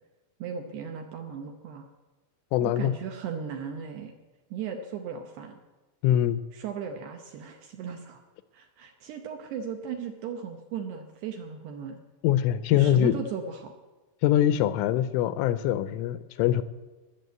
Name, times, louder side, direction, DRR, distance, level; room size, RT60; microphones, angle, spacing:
voice 1, 0.4-1.9 2.6-4.1 4.5-5.6 6.5-8.2 8.5-12.0 12.7-13.8, right 7 dB, 75° right, 4 dB, 2.5 m, -37 dB
voice 2, 2.5-2.9 6.0-6.4 12.2-13.2 14.2-16.6, left 11 dB, 85° left, 14 dB, 2.9 m, -23 dB
20.5 x 7.0 x 7.9 m, 1.2 s
omnidirectional pair, 5.8 m